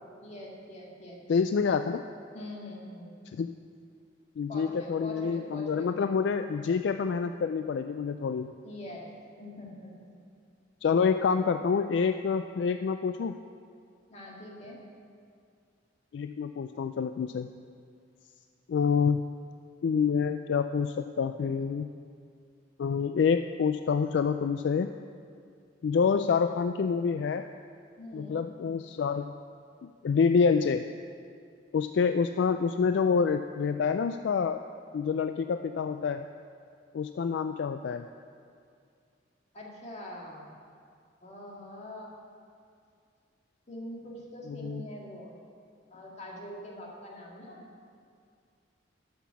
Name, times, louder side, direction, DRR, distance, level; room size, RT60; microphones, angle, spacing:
voice 1, 0.2-1.2 2.3-3.2 4.5-6.0 8.6-9.1 9.3-10.1 14.1-14.8 28.0-28.5 39.5-40.5 41.2-42.1 43.7-45.4 45.9-47.7, left 1 dB, 35° left, -2 dB, 2.0 m, -43 dB
voice 2, 1.3-2.0 3.4-3.5 4.4-8.5 10.8-13.4 16.1-17.5 18.7-19.2 19.8-21.9 22.8-24.9 25.8-27.5 28.1-29.3 30.0-30.8 31.7-34.6 34.9-36.3 36.9-38.1 44.6-44.8, left 5 dB, 65° left, 8 dB, 0.3 m, -27 dB
13.0 x 5.9 x 7.0 m, 2.3 s
head